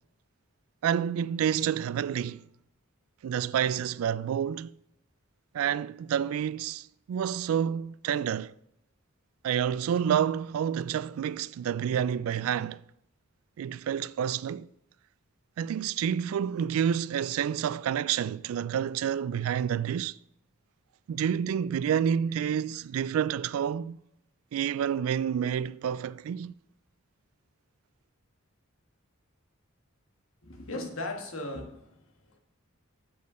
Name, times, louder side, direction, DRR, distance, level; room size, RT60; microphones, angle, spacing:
voice 1, 0.8-2.4 3.2-4.7 5.5-8.5 9.4-12.8 13.6-14.7 15.6-20.2 21.1-24.0 24.5-26.5, right 8 dB, 80° right, 0.3 m, -29 dB
voice 2, 30.4-31.9, left 2 dB, 70° left, 1.5 m, -37 dB
8.2 x 5.3 x 6.6 m
head